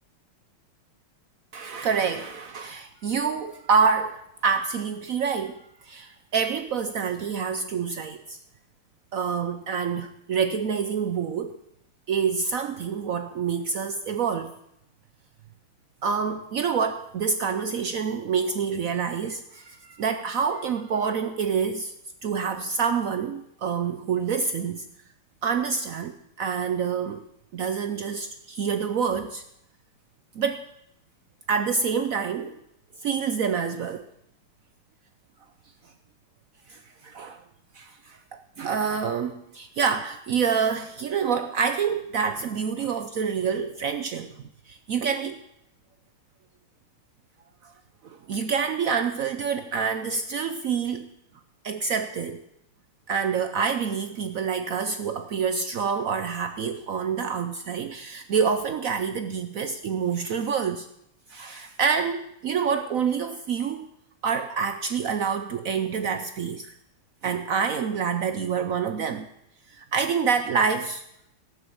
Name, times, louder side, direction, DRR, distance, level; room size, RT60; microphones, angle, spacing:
voice 1, 1.5-8.4 9.1-11.6 12.1-14.6 16.0-21.9 22.2-24.9 25.4-27.2 27.5-29.4 30.4-30.6 31.5-32.6 33.0-34.1 36.7-37.4 37.7-45.4 47.6-47.7 48.0-51.1 51.6-52.4 53.1-60.9 61.3-63.9 64.2-66.7 67.2-69.3 69.7-71.0, right 6 dB, 90° right, 9 dB, 0.7 m, -27 dB
17.5 x 7.2 x 7.8 m, 0.79 s
omnidirectional pair, 2.4 m